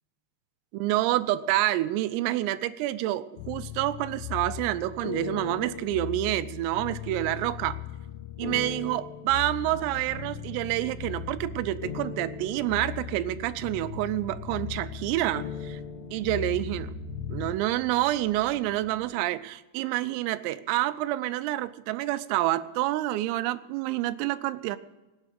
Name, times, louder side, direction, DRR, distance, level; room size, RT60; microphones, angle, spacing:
voice 1, 0.7-7.8 8.4-15.8 16.1-16.9 17.3-24.8, right 15 dB, 85° right, 14 dB, 3.3 m, -28 dB
sound 1, 3.4-17.5, left 12 dB, 80° left, 3.3 m, -38 dB
sound 2, 9.6-19.0, right 6 dB, 45° right, 2.1 m, -46 dB
16.5 x 9.6 x 8.0 m, 1.1 s
omnidirectional pair, 6.0 m